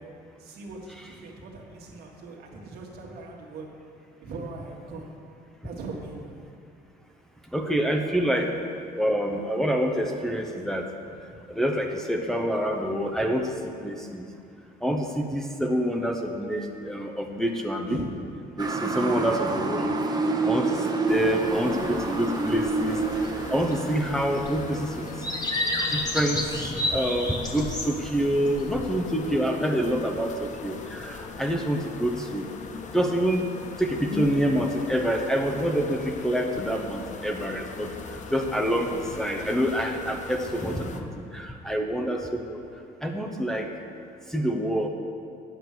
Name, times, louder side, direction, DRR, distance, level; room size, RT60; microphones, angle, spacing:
voice 1, 0.0-3.9 4.2-5.2 5.6-6.3 17.9-18.2 19.0-19.7, right 3 dB, 70° right, 0 dB, 1.9 m, -40 dB
voice 2, 7.5-8.6 9.0-10.9 11.5-13.5 13.8-14.2 14.8-18.0 18.6-19.9 20.4-23.0 23.5-25.1 25.9-32.4 32.9-33.4 33.8-42.6 43.0-43.7 44.3-44.9, equal, 5° left, 1 dB, 0.8 m, -27 dB
Motor vehicle (road) / Siren, 18.6-25.3, right 3 dB, 25° right, 1.1 m, -28 dB
sound 1, 21.1-41.0, left 5 dB, 45° left, 0.9 m, -39 dB
sound 2, 23.2-23.3 23.6-23.8 24.4-24.8 25.2-28.1 28.4-28.7, left 1 dB, 25° left, 1.4 m, -29 dB
9.1 x 8.2 x 6.8 m, 2.5 s
cardioid pair, 110°, 17 cm